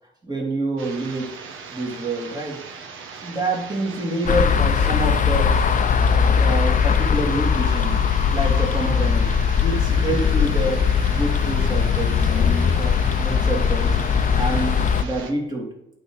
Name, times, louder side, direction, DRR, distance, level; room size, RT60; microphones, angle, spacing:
voice 1, 0.2-1.3 1.7-2.6 3.2-5.6 6.3-15.7, right 2 dB, 20° right, -1 dB, 2.8 m, -27 dB
sound 1, 0.8-15.3, right 5 dB, 85° right, 1.2 m, -39 dB
sound 2, 4.3-15.0, left 7 dB, 40° left, 0.6 m, -20 dB
8.7 x 4.0 x 6.4 m, 0.80 s
cardioid pair, 90°, 20 cm